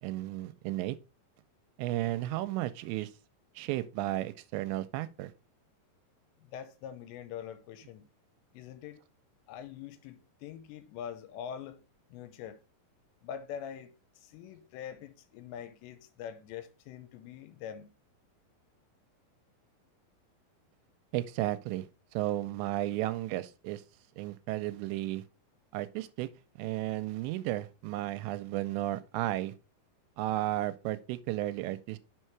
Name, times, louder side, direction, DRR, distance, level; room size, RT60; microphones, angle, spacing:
voice 1, 0.0-1.0 1.8-3.1 3.6-5.3 21.1-21.9 22.1-23.8 24.2-25.2 25.7-26.3 26.6-29.5 30.2-32.0, right 15 dB, 90° right, 2.8 m, -33 dB
voice 2, 6.4-8.0 8.5-9.0 9.5-11.8 12.1-12.6 13.2-17.9, left 9 dB, 90° left, 3.0 m, -44 dB
6.3 x 5.5 x 4.6 m
omnidirectional pair, 5.1 m